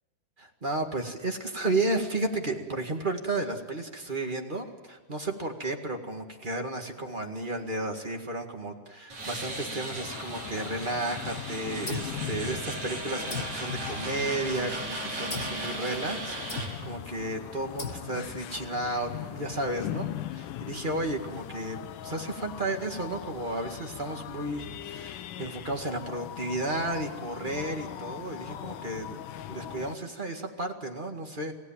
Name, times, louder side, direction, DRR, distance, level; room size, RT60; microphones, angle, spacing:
voice 1, 0.4-31.5, right 2 dB, 20° right, 3 dB, 1.4 m, -33 dB
sound 1, 9.1-16.7, right 2 dB, 55° right, 7.8 m, -37 dB
sound 2, 10.0-30.0, left 12 dB, 80° left, 2.4 m, -41 dB
sound 3, 11.9-12.9 13.3-14.6 15.3-15.7 16.5-17.0 17.8-18.4, left 4 dB, 35° left, 1.5 m, -38 dB
27.5 x 16.5 x 7.4 m, 1.4 s
omnidirectional pair, 3.7 m